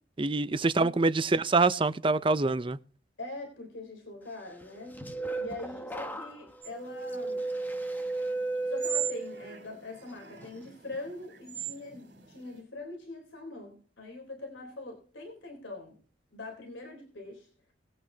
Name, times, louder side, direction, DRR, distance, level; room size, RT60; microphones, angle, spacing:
voice 1, 0.2-2.8, right 3 dB, 25° right, 0.5 m, -25 dB
voice 2, 3.2-5.0 5.3-7.4 8.7-16.0 16.3-17.5, left 2 dB, 80° left, 3.6 m, -43 dB
sound 1, 4.6-9.6 10.1-10.5, right 2 dB, 10° left, 1.1 m, -35 dB
sound 2, 6.6-12.6, right 9 dB, 60° right, 2.8 m, -41 dB
20.0 x 8.8 x 2.8 m
head